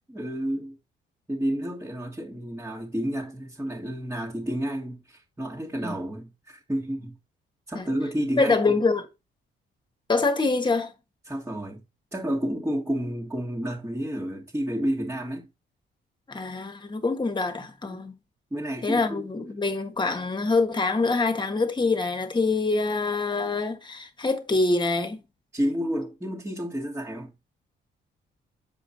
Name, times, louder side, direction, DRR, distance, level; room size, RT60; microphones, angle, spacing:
voice 1, 0.1-0.8 1.3-7.1 7.7-8.7 11.3-11.8 12.1-15.5 17.8-18.0 18.5-19.3 25.5-27.3, equal, 10° right, 1.7 m, -30 dB
voice 2, 8.3-9.1 10.1-10.9 16.3-18.1 18.8-25.2, left 3 dB, 25° left, 1.6 m, -25 dB
7.4 x 5.0 x 4.0 m
cardioid pair, 90°, 20 cm